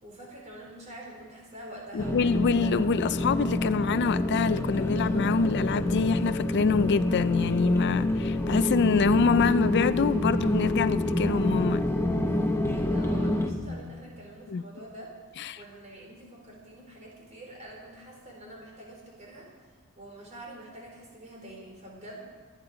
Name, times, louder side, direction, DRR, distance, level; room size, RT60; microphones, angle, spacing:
voice 1, 0.0-2.2 12.6-15.1 15.5-19.5 20.0-22.2, right 1 dB, 35° right, 4.3 m, -46 dB
voice 2, 1.9-11.8 14.5-14.6 15.4-15.6, left 4 dB, 50° left, 0.4 m, -25 dB
sound 1, 2.0-13.5, left 1 dB, 10° left, 1.0 m, -27 dB
23.5 x 9.7 x 5.0 m
head